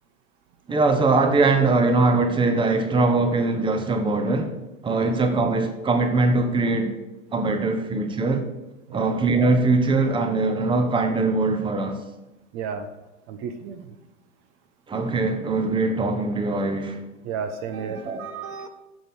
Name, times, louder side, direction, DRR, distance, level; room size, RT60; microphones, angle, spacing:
voice 1, 0.7-4.6 4.8-6.9 7.3-8.5 8.9-12.0 14.9-17.0 18.0-18.2, right 3 dB, 10° right, 6 dB, 1.1 m, -21 dB
voice 2, 12.5-12.9 13.3-13.8 17.2-18.7, right 6 dB, 40° right, 8 dB, 1.1 m, -32 dB
9.1 x 6.9 x 6.2 m, 1.0 s
figure-of-eight pair, 95°, 39 cm